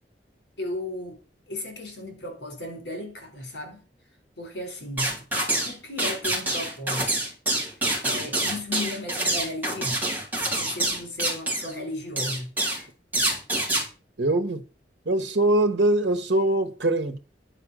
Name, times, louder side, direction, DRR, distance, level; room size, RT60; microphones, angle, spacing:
voice 1, 0.6-1.2 1.5-3.8 4.4-5.2 5.6-7.3 8.0-10.0 10.5-12.5, left 1 dB, 70° left, 4.2 m, -35 dB
sound 1, 5.0-5.7 6.0-11.7 12.2-12.8 13.1-13.8, right 1 dB, 10° right, 3.3 m, -26 dB
voice 2, 14.2-14.6 15.0-17.2, right 1 dB, 90° right, 1.2 m, -22 dB
9.8 x 5.1 x 6.3 m
head